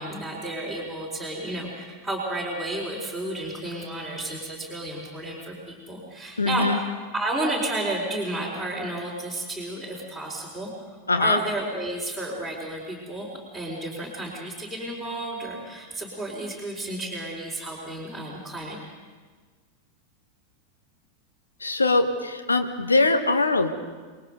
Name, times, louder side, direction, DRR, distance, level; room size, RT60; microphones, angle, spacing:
voice 1, 0.0-6.9 7.1-13.3 13.5-18.8, right 2 dB, 5° left, -3 dB, 4.5 m, -32 dB
voice 2, 6.4-6.8 11.1-11.4 21.6-23.7, left 3 dB, 80° left, 7 dB, 1.4 m, -22 dB
28.0 x 20.5 x 5.3 m, 1.5 s
figure-of-eight pair, 90°, 0 cm